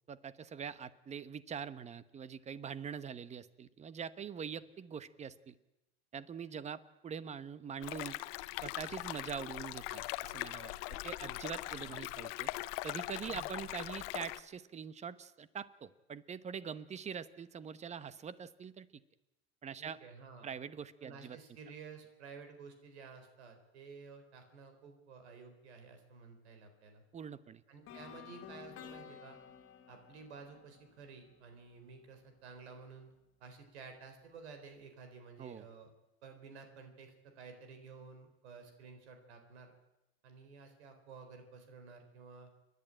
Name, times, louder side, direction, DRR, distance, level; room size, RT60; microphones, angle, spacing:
voice 1, 0.1-5.5 6.1-8.2 8.6-12.5 12.8-19.0 19.6-20.0 20.4-21.4 27.1-27.6 35.4-35.6, right 7 dB, 20° right, 15 dB, 0.9 m, -44 dB
sound 1, 7.8-14.4, left 19 dB, 60° left, 1.0 m, -41 dB
voice 2, 19.8-20.5 21.0-27.0 27.7-29.4 29.9-33.1 33.4-35.9 36.2-39.7 40.2-42.5, right 5 dB, 90° right, 6 dB, 4.1 m, -53 dB
sound 2, 27.9-31.8, left 8 dB, 40° left, 2.2 m, -53 dB
28.5 x 11.0 x 8.9 m, 0.95 s
supercardioid pair, 125°, 32 cm